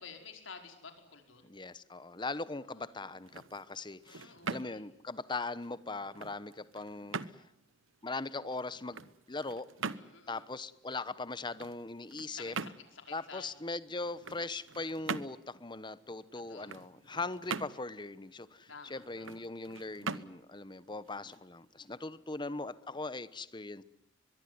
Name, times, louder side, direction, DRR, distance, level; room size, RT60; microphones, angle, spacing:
voice 1, 0.0-1.5 2.6-3.2 4.0-4.8 9.8-10.5 12.3-13.5 16.5-16.7 18.7-19.3, left 5 dB, 80° left, 5 dB, 5.0 m, -51 dB
voice 2, 1.4-7.2 8.0-9.7 10.3-12.5 13.1-23.8, left 3 dB, 25° left, 16 dB, 1.0 m, -40 dB
sound 1, 3.1-22.0, right 5 dB, 85° right, 1.0 m, -44 dB
23.5 x 22.5 x 9.6 m, 0.80 s
head